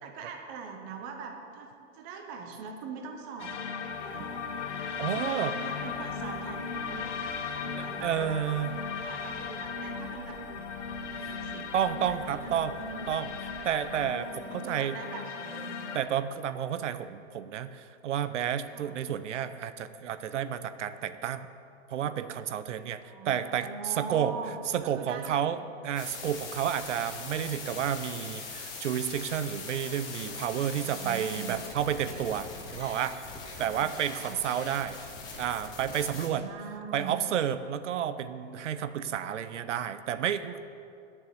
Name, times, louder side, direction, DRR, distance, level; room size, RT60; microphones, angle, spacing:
voice 1, 0.0-3.5 4.0-4.4 5.0-7.1 7.6-8.4 8.9-10.4 11.1-11.7 12.1-13.3 14.4-15.7 18.7-19.0 23.0-24.6 24.8-25.6 30.8-31.6 33.7-34.4 36.1-37.2, right 5 dB, 15° right, 3 dB, 0.7 m, -42 dB
sound 1, 3.4-16.0, left 5 dB, 75° left, 1.3 m, -37 dB
voice 2, 5.0-5.5 8.0-8.7 11.2-11.3 11.7-12.8 13.1-13.3 13.6-15.0 15.9-21.5 21.9-23.0 23.3-23.7 24.0-24.3 24.7-25.6 25.8-33.2 33.6-35.0 35.4-36.5 36.9-40.6, right 9 dB, 75° right, 12 dB, 0.8 m, -31 dB
sound 2, 5.5-14.1, right 1 dB, 50° right, 3.5 m, -51 dB
sound 3, 26.0-36.3, left 4 dB, 10° left, 0.8 m, -42 dB
9.8 x 7.2 x 8.5 m, 2.5 s
hypercardioid pair, 170°, 36 cm